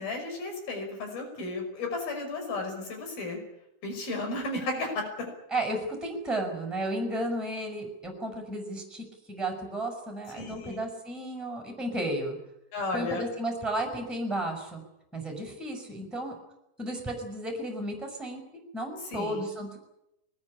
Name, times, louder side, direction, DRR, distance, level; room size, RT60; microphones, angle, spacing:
voice 1, 0.0-3.4 3.8-5.3 10.3-10.8 12.7-13.2 19.0-19.5, left 2 dB, 85° left, 4 dB, 7.4 m, -34 dB
voice 2, 5.5-12.4 12.9-14.8 15.1-16.3 16.8-19.8, right 1 dB, ahead, 4 dB, 5.8 m, -33 dB
22.0 x 20.0 x 9.9 m, 0.84 s
omnidirectional pair, 4.1 m